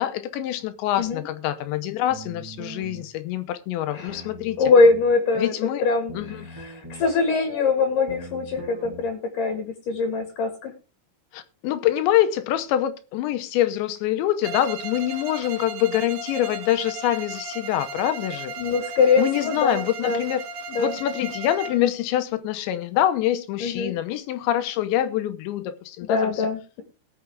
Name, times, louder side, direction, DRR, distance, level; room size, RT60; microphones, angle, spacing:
voice 1, 0.0-4.7 5.3-5.9 6.1-6.5 11.3-18.5 19.2-20.4 20.8-26.5, left 12 dB, 80° left, 3.0 m, -25 dB
sound 1, 2.1-3.1 4.1-5.1 6.1-7.1 8.1-9.0, right 1 dB, 10° right, 1.1 m, -41 dB
voice 2, 4.6-10.7 18.6-20.2 20.7-20.9 23.6-23.9 26.1-26.8, left 4 dB, 55° left, 2.8 m, -22 dB
Bowed string instrument, 14.4-21.9, right 3 dB, 65° right, 3.6 m, -36 dB
19.5 x 6.7 x 3.4 m
omnidirectional pair, 5.3 m